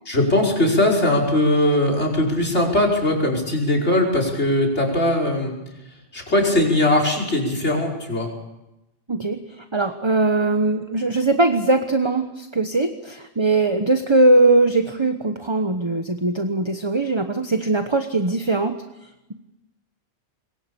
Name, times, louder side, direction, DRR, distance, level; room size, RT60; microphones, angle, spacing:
voice 1, 0.1-5.5 6.1-8.3, left 1 dB, 80° left, 2 dB, 5.7 m, -20 dB
voice 2, 9.1-18.7, right 2 dB, 25° right, 7 dB, 1.1 m, -20 dB
26.5 x 22.0 x 7.0 m, 0.95 s
omnidirectional pair, 1.1 m